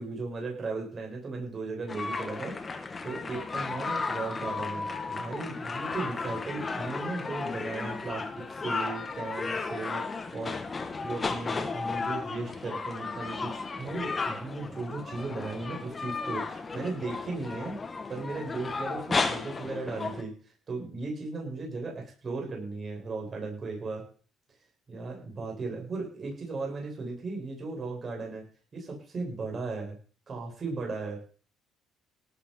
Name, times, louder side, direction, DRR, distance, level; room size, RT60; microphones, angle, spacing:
voice 1, 0.0-2.5 3.0-17.8 18.1-24.0 24.9-28.4 28.7-30.0 30.3-31.2, right 3 dB, 35° right, 0 dB, 7.9 m, -36 dB
sound 1, 1.9-20.2, left 4 dB, 25° left, 2.2 m, -34 dB
18.0 x 8.8 x 5.9 m, 0.41 s
cardioid pair, 115°, 0 cm